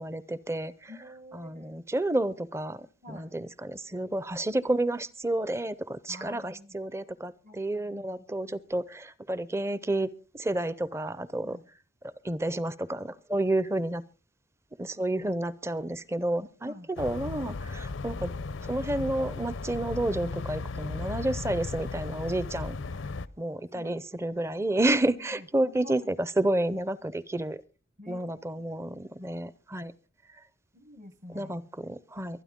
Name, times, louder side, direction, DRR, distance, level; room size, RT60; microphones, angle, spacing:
voice 1, 0.0-0.9 1.3-10.1 10.3-11.6 12.0-14.0 14.8-18.3 18.7-22.8 23.4-27.6 28.1-29.9 31.3-32.4, right 1 dB, 15° right, 18 dB, 0.6 m, -30 dB
voice 2, 0.9-1.8 3.0-3.3 6.1-6.8 7.4-8.6 11.4-11.6 16.6-16.9 23.7-24.0 25.3-26.1 28.0-28.9 30.7-31.5, left 1 dB, 40° right, 9 dB, 1.1 m, -48 dB
sound 1, 17.0-23.3, left 3 dB, 80° left, 0.6 m, -36 dB
24.0 x 9.8 x 3.7 m, 0.35 s
head